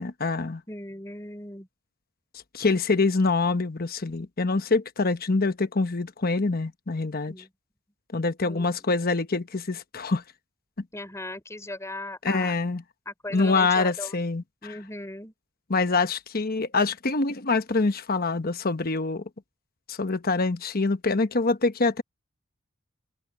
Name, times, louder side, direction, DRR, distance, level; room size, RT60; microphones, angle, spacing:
voice 1, 0.0-0.6 2.5-7.3 8.1-10.2 12.2-12.8 13.3-14.4 15.7-19.2 19.9-22.0, left 3 dB, 45° left, 1.1 m, -25 dB
voice 2, 0.7-1.7 7.3-7.5 8.5-9.0 10.9-12.6 13.1-14.2 14.6-15.3, left 1 dB, 15° left, 4.5 m, -38 dB
open air
head